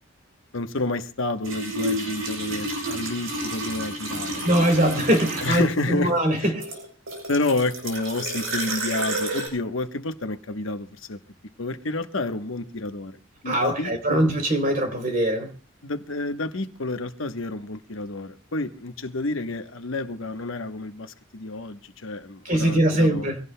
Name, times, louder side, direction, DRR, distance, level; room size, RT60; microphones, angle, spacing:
voice 1, 0.5-4.7 5.4-6.1 6.4-6.5 7.3-11.2 11.6-13.2 13.4-14.2 15.8-23.3, left 2 dB, 75° left, 1.0 m, -29 dB
sound 1, 1.4-5.9 6.6-9.5, right 1 dB, 85° right, 7.0 m, -30 dB
voice 2, 4.4-6.7 13.4-15.5 22.4-23.4, right 1 dB, 40° right, 3.2 m, -22 dB
24.5 x 17.0 x 2.2 m
head